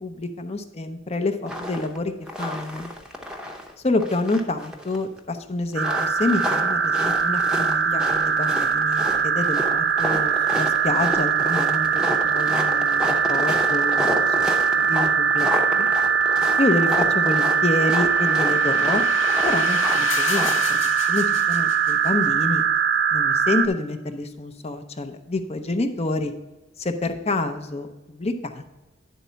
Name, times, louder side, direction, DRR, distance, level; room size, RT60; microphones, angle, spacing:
voice 1, 0.0-2.1 2.4-2.9 3.8-14.3 14.8-15.9 16.6-19.0 19.4-20.8 21.1-22.6 23.1-26.3 26.8-28.7, left 2 dB, 30° left, 8 dB, 0.6 m, -27 dB
sound 1, 1.5-2.0 2.3-3.7 4.0-5.2 5.7-20.6, left 1 dB, 5° right, 0.7 m, -30 dB
sound 2, 5.8-23.7, right 6 dB, 55° right, 0.5 m, -21 dB
sound 3, 17.0-22.3, left 7 dB, 70° left, 0.6 m, -33 dB
10.0 x 4.1 x 5.6 m, 1.1 s
head